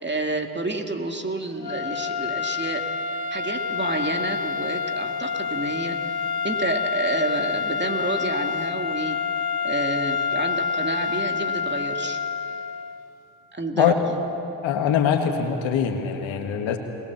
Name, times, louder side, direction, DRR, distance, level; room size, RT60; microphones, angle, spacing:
voice 1, 0.0-2.9 3.3-6.0 6.4-9.2 9.6-12.2 13.5-14.2, right 2 dB, 25° right, 4 dB, 2.4 m, -29 dB
sound 1, 1.6-13.1, left 6 dB, 55° left, 1.1 m, -28 dB
voice 2, 14.6-16.8, left 8 dB, 80° left, 5 dB, 1.7 m, -22 dB
21.5 x 20.5 x 7.2 m, 3.0 s
hypercardioid pair, 45°, 45 cm